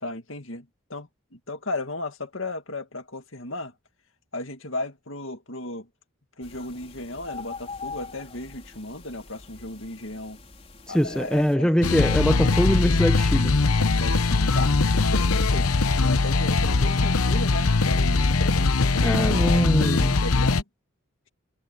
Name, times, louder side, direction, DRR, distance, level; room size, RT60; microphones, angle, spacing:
voice 1, 0.0-3.7 4.3-5.9 6.4-10.4 10.9-11.7 13.7-15.7 16.0-20.6, left 2 dB, 65° left, 2.3 m, -35 dB
sound 1, 6.4-11.6, left 4 dB, 30° left, 4.4 m, -42 dB
voice 2, 10.9-13.6 19.0-20.2, equal, 5° left, 0.7 m, -23 dB
sound 2, 11.8-20.6, left 3 dB, 90° left, 0.9 m, -21 dB
head